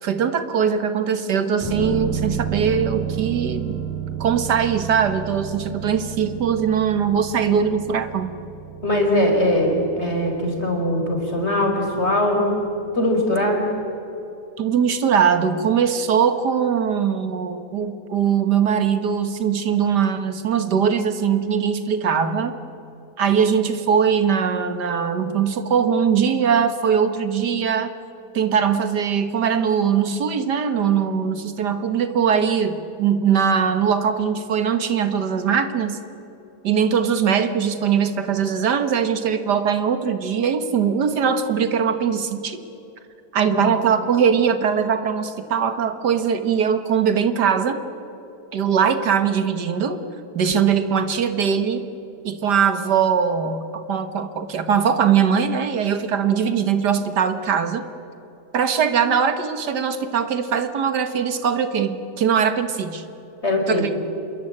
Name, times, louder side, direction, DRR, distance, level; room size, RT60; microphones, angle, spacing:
voice 1, 0.0-3.8 4.2-8.4 14.6-22.5 23.2-27.9 28.3-36.0 36.6-42.6 43.3-47.8 48.5-50.0 50.4-51.8 52.2-57.8 58.5-63.0 63.7-63.9, right 7 dB, 80° right, 10 dB, 2.0 m, -21 dB
sound 1, 1.6-13.2 13.5-13.6, right 7 dB, 5° right, 7.5 m, -32 dB
voice 2, 8.8-12.5 12.9-13.7 43.5-43.7 63.4-63.8, left 1 dB, 40° left, 2 dB, 4.7 m, -21 dB
26.5 x 22.5 x 8.7 m, 2.9 s
omnidirectional pair, 1.8 m